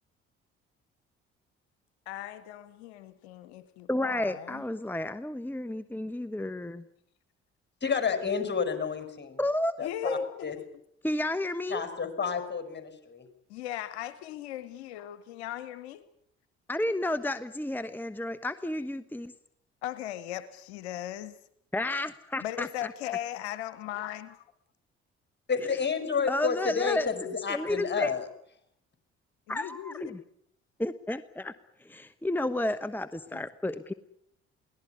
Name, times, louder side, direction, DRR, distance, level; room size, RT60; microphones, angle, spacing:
voice 1, 2.1-4.6 9.8-10.5 13.5-16.0 19.8-21.4 22.4-24.3 29.5-30.2, left 12 dB, 80° left, 13 dB, 1.1 m, -38 dB
voice 2, 3.9-6.8 9.4-9.8 10.0-10.3 11.0-11.8 16.7-19.3 21.7-22.9 26.3-27.1 27.5-28.1 29.5-30.2 30.8-31.5 31.8-33.9, left 1 dB, 5° left, 13 dB, 1.2 m, -31 dB
voice 3, 7.8-9.4 9.8-10.6 11.7-13.3 25.5-28.3, left 6 dB, 35° left, 9 dB, 5.6 m, -30 dB
22.5 x 18.5 x 9.7 m, 0.73 s
hypercardioid pair, 50°, 32 cm